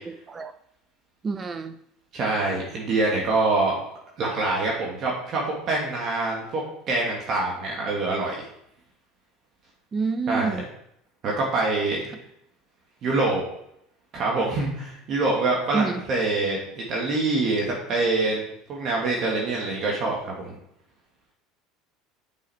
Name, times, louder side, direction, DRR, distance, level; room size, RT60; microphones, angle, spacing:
voice 1, 1.2-1.7 9.9-10.7 15.7-16.0, right 4 dB, 25° right, 10 dB, 0.7 m, -27 dB
voice 2, 2.1-3.8 4.2-6.6 6.9-8.5 10.3-10.6 11.2-12.1 13.0-13.4 14.1-18.4 18.7-20.6, right 3 dB, 45° right, -2 dB, 2.1 m, -25 dB
7.7 x 5.6 x 4.3 m, 0.74 s
supercardioid pair, 105°, 0 cm